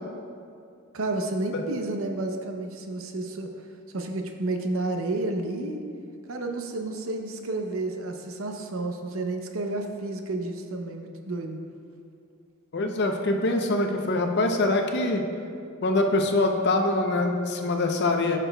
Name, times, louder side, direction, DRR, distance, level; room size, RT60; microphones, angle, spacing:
voice 1, 0.9-3.5 3.9-5.8 6.3-11.6, right 2 dB, 70° right, 4 dB, 0.7 m, -31 dB
voice 2, 12.7-15.2 15.8-18.4, left 2 dB, 50° left, 4 dB, 0.6 m, -24 dB
11.0 x 6.1 x 2.2 m, 2.5 s
head